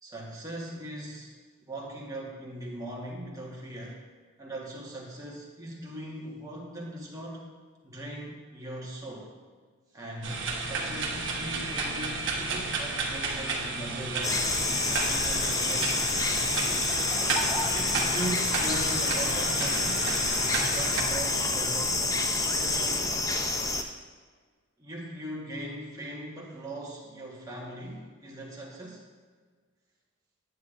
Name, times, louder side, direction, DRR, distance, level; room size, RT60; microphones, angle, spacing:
voice 1, 0.0-1.3 1.6-4.0 4.4-7.4 7.8-9.3 9.9-14.4 15.0-16.1 17.6-20.1 20.7-22.1 22.4-23.3 24.8-29.0, right 1 dB, 15° right, -3 dB, 1.3 m, -39 dB
sound 1, 10.2-21.0, right 3 dB, 55° right, 1.0 m, -32 dB
sound 2, 14.2-23.8, left 3 dB, 15° left, 0.3 m, -28 dB
9.4 x 8.3 x 2.5 m, 1.5 s
head